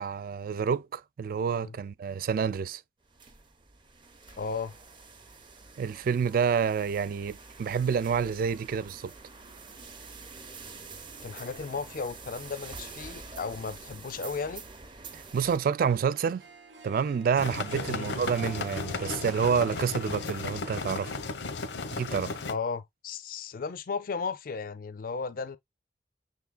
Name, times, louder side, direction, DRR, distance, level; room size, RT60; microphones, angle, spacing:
voice 1, 0.0-2.8 5.8-9.1 15.1-16.4 16.8-21.2 21.9-22.4, right 6 dB, 55° right, 0.3 m, -28 dB
sound 1, 3.0-15.6, right 4 dB, 30° right, 0.7 m, -47 dB
voice 2, 4.4-4.7 11.2-14.6 17.9-18.1 22.5-25.6, left 5 dB, 50° left, 0.4 m, -35 dB
Harp, 15.8-22.0, right 2 dB, 90° right, 0.9 m, -48 dB
sound 2, 17.4-22.5, left 3 dB, 85° left, 0.8 m, -35 dB
6.5 x 3.5 x 2.2 m
head